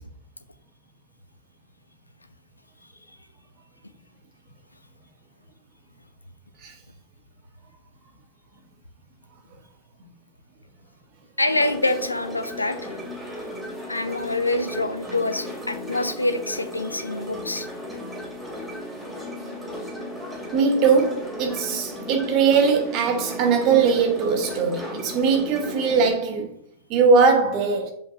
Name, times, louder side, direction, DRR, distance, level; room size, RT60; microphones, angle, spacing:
voice 1, 11.4-13.0 13.9-17.7, left 2 dB, 85° left, 0.6 m, -26 dB
sound 1, 11.5-26.1, left 1 dB, 15° right, 2.7 m, -35 dB
voice 2, 20.5-26.5 26.9-27.9, right 5 dB, 40° right, 1.3 m, -20 dB
7.0 x 5.2 x 2.8 m
figure-of-eight pair, 90°, 0 cm